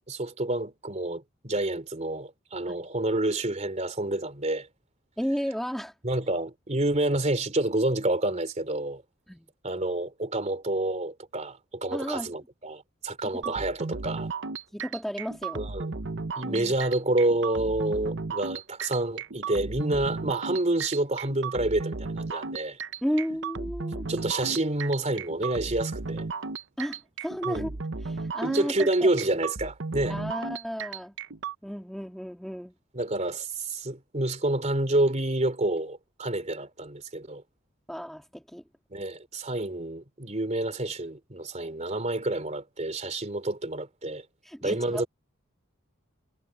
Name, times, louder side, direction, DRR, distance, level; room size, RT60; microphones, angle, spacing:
voice 1, 0.0-4.7 6.0-9.0 9.6-14.3 15.5-15.9 16.4-22.8 24.1-26.2 27.4-27.7 28.4-30.2 32.9-37.4 38.9-44.2 44.6-45.1, right 2 dB, 35° right, 3.1 m, -28 dB
voice 2, 5.2-5.9 9.3-9.5 11.9-12.3 13.2-13.5 14.7-15.6 16.4-16.8 23.0-24.1 26.8-27.7 28.0-29.1 30.1-31.1 31.6-32.7 37.9-38.6 44.4-45.1, equal, ahead, 2.5 m, -33 dB
sound 1, 13.4-31.5, right 4 dB, 60° right, 1.0 m, -35 dB
head